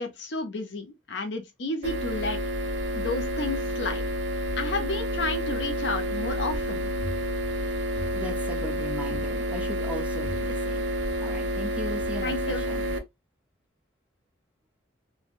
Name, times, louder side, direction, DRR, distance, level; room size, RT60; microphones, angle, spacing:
voice 1, 0.0-2.4 2.9-4.0 4.6-6.9 12.2-12.6, left 2 dB, 65° left, 0.7 m, -31 dB
sound 1, 1.8-13.0, equal, 75° right, 0.7 m, -29 dB
voice 2, 7.9-10.9 11.2-13.0, equal, 5° right, 0.7 m, -37 dB
3.2 x 2.2 x 2.5 m
head